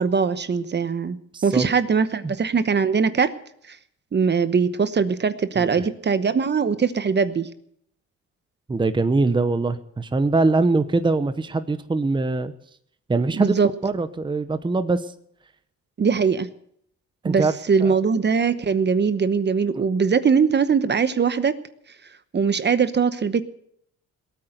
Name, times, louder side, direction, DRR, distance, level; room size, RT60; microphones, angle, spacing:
voice 1, 0.0-1.2 1.4-3.3 3.7-3.8 4.1-7.5 13.3-13.7 16.0-16.5 17.2-21.6 22.3-23.4, right 5 dB, 35° right, 13 dB, 1.0 m, -21 dB
voice 2, 1.3-1.7 2.2-2.3 5.6-5.8 8.7-12.5 13.1-13.5 13.8-15.1 17.2-17.5 17.8-18.0 19.7-19.9, right 3 dB, 15° right, 11 dB, 0.9 m, -22 dB
18.5 x 8.9 x 8.0 m, 0.70 s
cardioid pair, 90°, 30 cm